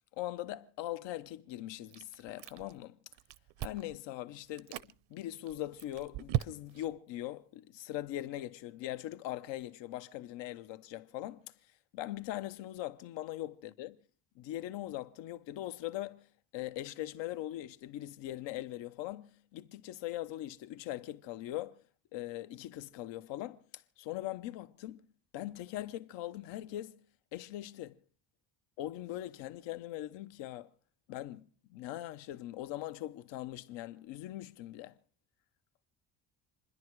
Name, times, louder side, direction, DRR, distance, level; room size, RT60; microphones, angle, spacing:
voice 1, 0.1-3.0 3.6-11.5 11.9-14.0 14.4-16.3 16.5-21.8 22.1-25.1 25.3-27.0 27.3-28.0 28.8-30.7 31.1-31.4 31.7-35.0, left 14 dB, 90° left, 1.0 m, -41 dB
Chewing mastication, 1.9-2.8 3.1-4.0 4.5-4.9 5.5-6.9, right 14 dB, 70° right, 0.7 m, -37 dB
27.5 x 11.0 x 4.7 m
cardioid pair, 150°, 43 cm